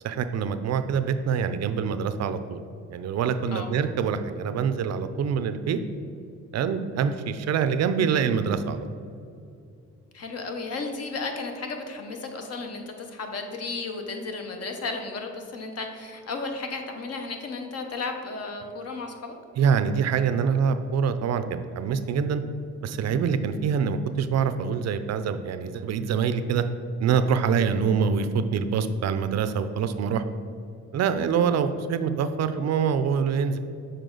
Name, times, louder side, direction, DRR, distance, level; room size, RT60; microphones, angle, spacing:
voice 1, 0.0-2.6 2.9-5.8 6.5-8.9 19.6-22.4 22.8-26.6 27.0-30.2 30.9-33.6, right 6 dB, 60° right, 10 dB, 0.5 m, -25 dB
voice 2, 10.1-19.4, left 3 dB, 55° left, 4 dB, 0.9 m, -34 dB
6.6 x 4.4 x 3.9 m, 2.4 s
cardioid pair, 90°, 30 cm